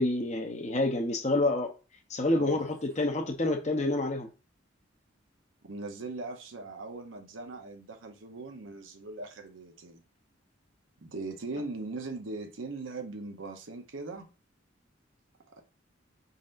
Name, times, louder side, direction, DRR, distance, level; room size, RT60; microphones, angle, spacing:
voice 1, 0.0-1.7 2.1-4.3, left 2 dB, 35° left, 0.7 m, -28 dB
voice 2, 2.3-2.7 5.6-10.0 11.0-14.3 15.5-15.6, right 3 dB, 85° right, 0.8 m, -40 dB
5.2 x 4.0 x 2.5 m
head